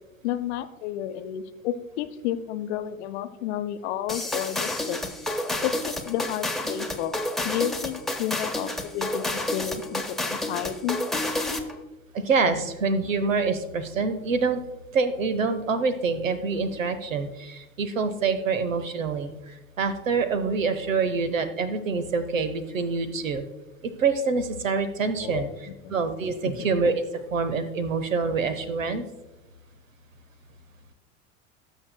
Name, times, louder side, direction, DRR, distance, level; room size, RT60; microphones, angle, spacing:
voice 1, 0.2-5.0 5.6-11.0 25.2-25.9 26.5-26.7, left 11 dB, 55° left, 10 dB, 0.8 m, -31 dB
sound 1, 4.1-11.7, left 1 dB, ahead, 1.0 m, -30 dB
voice 2, 12.1-14.6 14.9-23.4 23.8-25.5 25.9-27.0 27.3-29.0, right 4 dB, 80° right, 11 dB, 1.0 m, -26 dB
18.5 x 7.1 x 2.2 m, 1.0 s
figure-of-eight pair, 75°, 39 cm